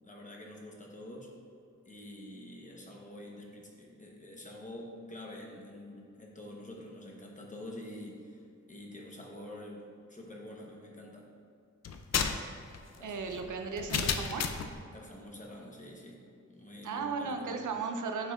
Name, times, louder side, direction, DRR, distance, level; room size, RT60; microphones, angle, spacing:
voice 1, 0.0-1.3 1.8-11.2 12.9-13.2 14.9-16.2 16.5-17.6, left 1 dB, 25° left, -1 dB, 1.0 m, -47 dB
sound 1, 11.8-14.7, left 6 dB, 60° left, 0.5 m, -33 dB
voice 2, 13.0-14.5 16.8-18.3, right 5 dB, 90° right, 4 dB, 0.6 m, -36 dB
9.8 x 5.5 x 2.4 m, 2.5 s
wide cardioid pair, 155°, 30 cm